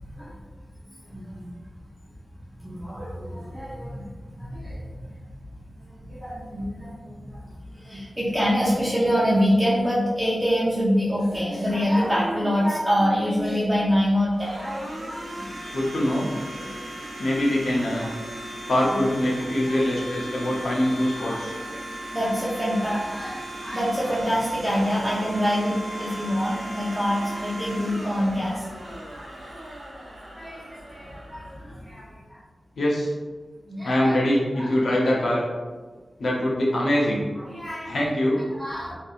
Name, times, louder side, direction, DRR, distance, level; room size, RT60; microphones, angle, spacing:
voice 1, 1.0-1.5 2.6-5.2 5.8-15.5 16.5-16.7 17.8-18.1 18.9-19.0 19.7-19.8 20.4-20.6 21.1-21.4 21.7-21.8 22.1-28.7 29.1-29.3 30.2-32.4 33.7-34.1 34.5-34.7 37.3-38.0 38.5-38.9, equal, 15° right, -8 dB, 0.6 m, -26 dB
Domestic sounds home sounds, 13.4-32.2, right 1 dB, 80° right, 0.8 m, -37 dB
voice 2, 15.7-16.3 17.2-18.1 18.7-21.5 23.9-24.2 32.8-33.1 33.8-35.4 36.2-37.2 37.8-38.4, left 1 dB, 85° left, -4 dB, 0.7 m, -23 dB
2.6 x 2.6 x 2.4 m, 1.3 s
wide cardioid pair, 75°, 0 cm